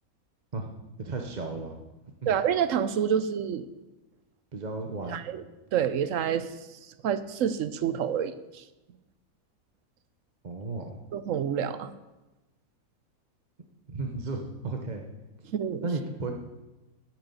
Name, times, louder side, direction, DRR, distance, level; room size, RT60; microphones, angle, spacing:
voice 1, 1.0-1.8 2.2-2.3 4.5-5.3 10.4-11.0 13.9-15.0 15.8-16.3, right 3 dB, 35° right, 2 dB, 1.0 m, -34 dB
voice 2, 2.3-3.7 5.1-5.4 5.7-6.5 7.0-8.6 11.1-11.9 15.5-15.9, right 8 dB, 65° right, 13 dB, 1.0 m, -28 dB
9.4 x 9.0 x 7.1 m, 1.0 s
omnidirectional pair, 1.6 m